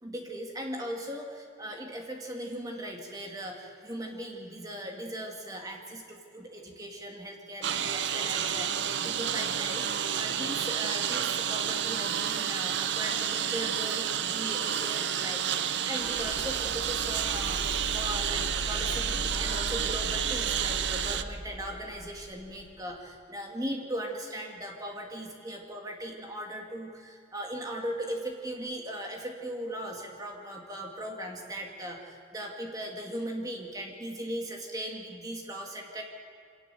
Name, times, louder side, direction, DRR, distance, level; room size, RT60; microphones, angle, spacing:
voice 1, 0.0-9.8 10.1-17.7 17.9-36.0, right 1 dB, 20° right, 1 dB, 2.3 m, -38 dB
Engine, 7.6-21.2, right 9 dB, 65° right, 0.7 m, -30 dB
sound 1, 16.0-22.7, equal, 25° left, 1.6 m, -38 dB
24.5 x 18.0 x 7.0 m, 2.2 s
head